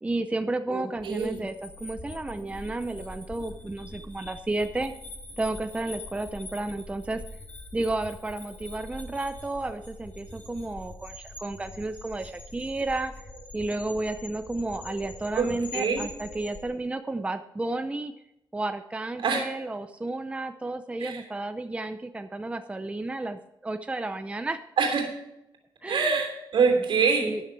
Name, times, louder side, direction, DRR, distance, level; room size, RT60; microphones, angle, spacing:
voice 1, 0.0-4.9 5.4-7.2 7.7-13.1 13.5-18.1 18.5-24.6 25.8-26.2 27.2-27.4, right 2 dB, 15° right, 8 dB, 0.6 m, -32 dB
voice 2, 0.7-1.4 15.3-16.0 19.2-19.5 21.0-21.2 24.8-25.1 25.9-27.3, right 5 dB, 90° right, 3 dB, 3.0 m, -25 dB
sound 1, 1.0-16.6, left 2 dB, 15° left, 2.2 m, -44 dB
12.5 x 9.4 x 4.6 m, 0.87 s
wide cardioid pair, 110°, 8 cm